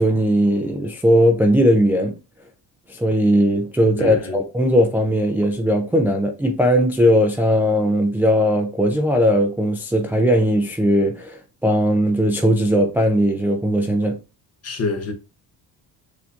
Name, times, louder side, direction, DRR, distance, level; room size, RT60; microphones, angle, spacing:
voice 1, 0.0-2.2 2.9-14.2, equal, 5° right, 0.4 m, -18 dB
voice 2, 4.0-4.4 14.6-15.1, left 3 dB, 40° left, 0.9 m, -26 dB
6.0 x 2.6 x 2.5 m
cardioid pair, 100°, 40 cm